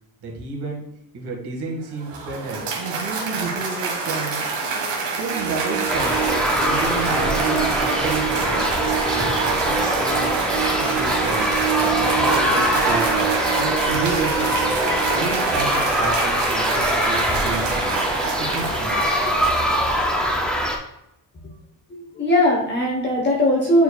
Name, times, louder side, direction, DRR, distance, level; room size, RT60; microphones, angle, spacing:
voice 1, 0.2-0.8 1.1-4.4 5.1-8.6 9.1-10.3 10.6-14.8 15.1-18.0 18.4-19.0 20.2-20.3, right 3 dB, 50° right, -1 dB, 1.7 m, -31 dB
Cheering / Applause, 1.8-20.5, right 4 dB, 85° right, 1.5 m, -26 dB
sound 1, 5.3-15.2, right 11 dB, 30° right, 2.3 m, -29 dB
sound 2, 5.9-20.8, equal, ahead, 0.3 m, -23 dB
voice 2, 21.9-23.8, left 1 dB, 20° left, -4 dB, 0.9 m, -19 dB
9.0 x 4.9 x 2.2 m, 0.84 s
cardioid pair, 175°, 49 cm